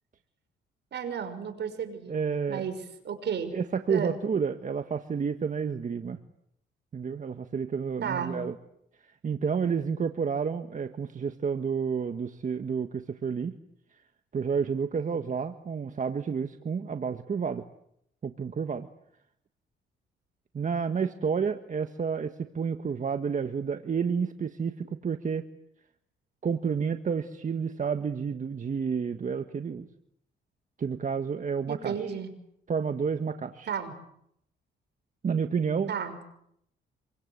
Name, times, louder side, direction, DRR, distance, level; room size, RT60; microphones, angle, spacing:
voice 1, 0.9-2.2 2.5-2.8 3.0-3.6 3.9-4.2 8.0-8.4 31.7-32.3 33.7-33.9 35.9-36.2, right 7 dB, 60° right, 8 dB, 5.9 m, -32 dB
voice 2, 2.1-2.7 3.5-6.2 6.9-8.5 9.0-13.6 14.3-17.6 18.2-18.9 20.5-25.4 26.4-29.9 30.8-32.1 32.7-33.7 35.2-35.9, right 6 dB, 40° right, 8 dB, 1.6 m, -30 dB
27.0 x 24.5 x 8.3 m, 0.74 s
cardioid pair, 90°, 20 cm